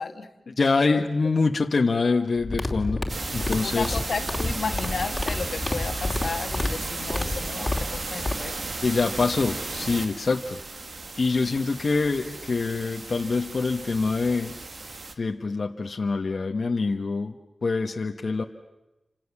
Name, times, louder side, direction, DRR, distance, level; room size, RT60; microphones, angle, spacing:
voice 1, 0.0-0.5 0.9-1.0 3.6-8.5 11.0-11.1, left 5 dB, 75° left, 7 dB, 1.6 m, -33 dB
voice 2, 0.6-3.0 3.3-4.0 8.8-10.6 11.2-14.5 15.2-17.3 17.6-18.4, left 4 dB, 60° left, 3 dB, 1.2 m, -25 dB
sound 1, 2.4-8.3, left 2 dB, 25° left, 2.9 m, -29 dB
sound 2, 3.1-15.1, right 3 dB, 55° right, 1.9 m, -35 dB
29.5 x 26.5 x 7.2 m, 0.97 s
wide cardioid pair, 75°, 0 cm